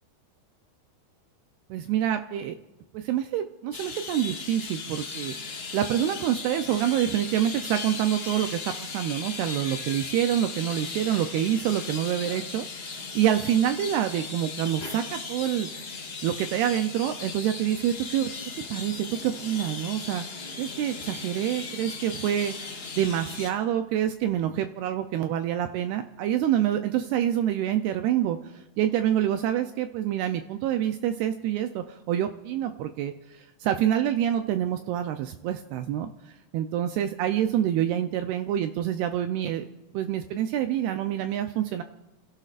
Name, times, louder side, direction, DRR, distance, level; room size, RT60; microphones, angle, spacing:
voice 1, 1.7-2.6 2.9-18.3 18.7-36.1 36.5-39.7 39.9-41.8, right 11 dB, 85° right, 7 dB, 2.3 m, -27 dB
sound 1, 3.7-23.5, left 4 dB, 60° left, 1.3 m, -37 dB
29.5 x 16.5 x 2.5 m, 1.0 s
omnidirectional pair, 5.3 m